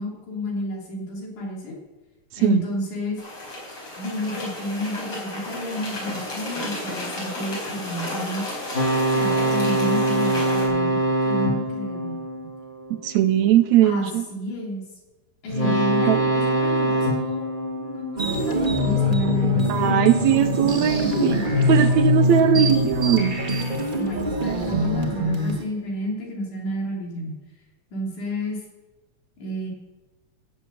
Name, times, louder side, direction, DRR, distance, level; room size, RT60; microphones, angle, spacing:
voice 1, 0.0-1.8 2.4-3.2 4.0-8.4 9.1-11.0 11.2-12.2 13.8-14.8 15.4-17.4 17.8-20.0 21.0-21.4 24.0-27.3 27.9-28.6 29.4-29.7, left 1 dB, 75° left, -1 dB, 4.8 m, -30 dB
sound 1, 3.2-10.7, left 1 dB, 45° left, 5.4 m, -33 dB
sound 2, 8.7-13.1 15.5-18.8, right 1 dB, 15° left, 2.2 m, -24 dB
voice 2, 12.9-14.2 15.6-16.2 19.7-21.3 21.7-23.4, right 11 dB, 75° right, 9 dB, 1.8 m, -20 dB
sound 3, 18.2-25.6, left 1 dB, 30° right, 0.9 m, -23 dB
15.0 x 8.1 x 7.7 m, 1.2 s
omnidirectional pair, 3.6 m